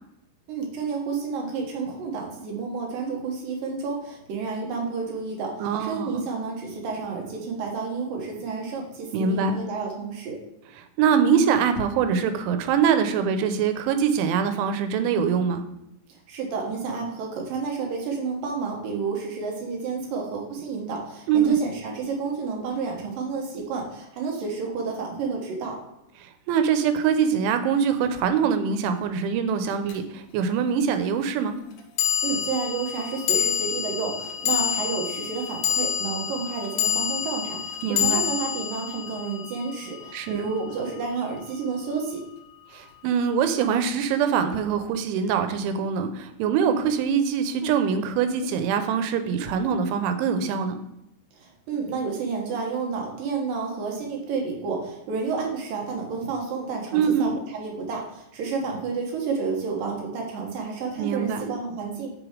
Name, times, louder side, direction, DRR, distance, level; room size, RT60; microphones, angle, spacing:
voice 1, 0.5-10.4 16.3-25.8 32.2-42.2 51.4-62.1, right 4 dB, 70° right, 0 dB, 2.3 m, -30 dB
voice 2, 5.6-6.3 9.1-9.6 11.0-15.6 21.3-21.5 26.5-31.6 37.8-38.3 40.1-40.5 42.7-50.8 56.9-57.4 61.0-61.5, right 7 dB, 90° right, 8 dB, 3.1 m, -23 dB
sound 1, 29.9-30.0 32.0-40.4, left 9 dB, 80° left, 2.5 m, -27 dB
6.7 x 5.0 x 4.9 m, 0.85 s
omnidirectional pair, 5.3 m